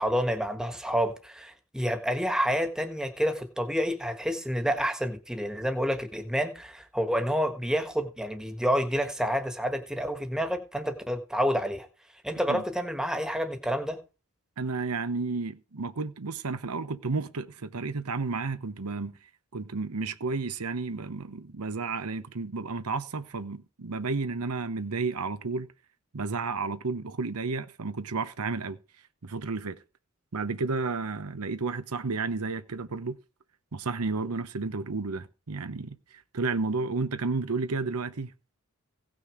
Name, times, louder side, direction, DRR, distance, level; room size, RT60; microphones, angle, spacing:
voice 1, 0.0-11.9 12.2-14.0, equal, 5° right, 1.5 m, -29 dB
voice 2, 14.6-19.1 19.5-25.7 26.1-28.8 29.2-29.8 30.3-33.2 33.7-38.3, right 4 dB, 90° right, 0.9 m, -32 dB
16.5 x 6.3 x 4.9 m
head